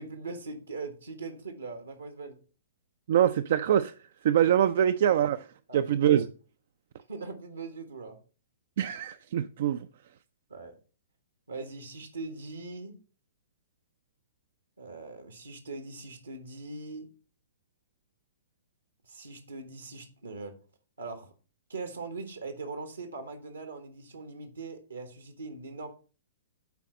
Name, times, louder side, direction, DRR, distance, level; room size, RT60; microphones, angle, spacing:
voice 1, 0.0-2.4 5.7-6.2 7.1-8.2 10.5-10.7 11.5-12.9 14.8-17.1 19.1-20.6 21.0-21.3 21.7-25.9, right 3 dB, 75° right, 1.4 m, -41 dB
voice 2, 3.1-3.9 4.2-5.5 5.7-6.3 8.8-9.9, right 10 dB, 50° right, 0.3 m, -24 dB
9.2 x 4.1 x 5.3 m
figure-of-eight pair, 115°, 0 cm